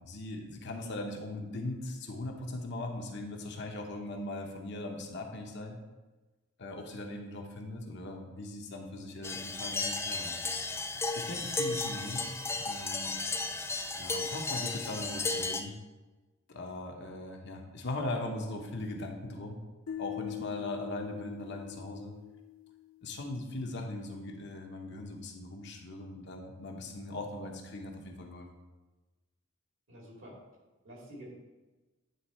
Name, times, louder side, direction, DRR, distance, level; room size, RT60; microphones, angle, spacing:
voice 1, 0.0-5.8 6.6-10.8 11.1-12.2 12.6-13.4 14.0-15.7 16.5-19.6 20.0-22.1 23.0-28.5, left 2 dB, 55° left, 2 dB, 0.9 m, -39 dB
sound 1, 9.2-15.6, left 3 dB, 10° left, 0.3 m, -34 dB
sound 2, 19.9-23.0, left 13 dB, 85° left, 0.4 m, -42 dB
voice 2, 29.9-30.4 30.8-31.3, equal, 65° right, -3 dB, 2.5 m, -48 dB
9.4 x 3.6 x 4.3 m, 1.2 s
head